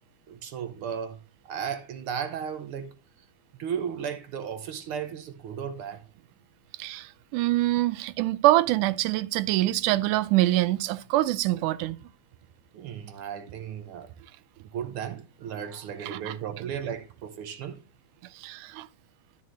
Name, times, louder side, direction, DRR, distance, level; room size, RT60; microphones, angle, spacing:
voice 1, 0.3-1.2 1.5-2.9 3.6-6.0 12.7-14.1 14.7-17.8, right 8 dB, 75° right, 1.3 m, -35 dB
voice 2, 6.8-12.0 16.0-16.3 18.4-18.9, right 16 dB, 90° right, 2.1 m, -25 dB
12.5 x 6.4 x 3.1 m
omnidirectional pair, 3.5 m